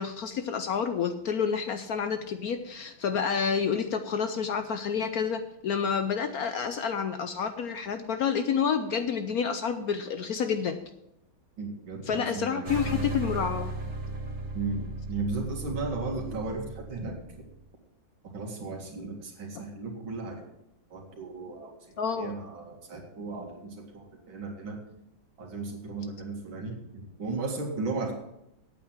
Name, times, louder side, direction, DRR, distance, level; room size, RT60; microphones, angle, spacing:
voice 1, 0.0-10.8 12.1-13.7 22.0-22.4, left 6 dB, 65° left, 9 dB, 1.0 m, -29 dB
voice 2, 11.6-12.7 14.5-17.2 18.3-20.4 20.9-21.8 22.2-24.8 25.4-28.1, right 3 dB, 85° right, 1 dB, 2.8 m, -35 dB
sound 1, 12.7-17.5, right 2 dB, 60° right, 2.2 m, -36 dB
8.6 x 8.5 x 7.5 m, 0.82 s
omnidirectional pair, 2.1 m